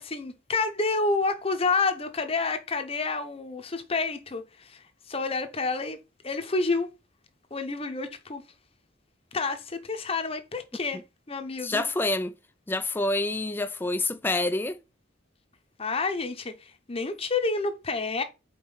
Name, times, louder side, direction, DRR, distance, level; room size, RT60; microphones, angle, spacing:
voice 1, 0.0-6.0 6.2-6.9 7.5-8.4 9.3-11.0 11.3-11.8 15.8-18.2, left 3 dB, 30° left, 0.8 m, -29 dB
voice 2, 11.6-12.3 12.7-14.8, left 2 dB, 10° left, 0.4 m, -27 dB
5.2 x 4.3 x 5.5 m
head